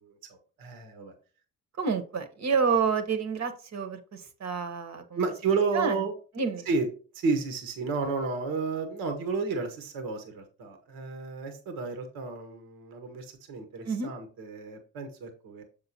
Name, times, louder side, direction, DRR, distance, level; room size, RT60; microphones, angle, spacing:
voice 1, 0.0-1.1 5.2-6.1 6.6-6.9 7.1-15.6, right 4 dB, 70° right, 6 dB, 1.6 m, -32 dB
voice 2, 1.8-5.2 5.7-6.0 6.4-6.7 13.8-14.1, right 5 dB, 50° right, 8 dB, 1.5 m, -29 dB
7.3 x 5.9 x 2.9 m, 0.37 s
hypercardioid pair, 50°, 36 cm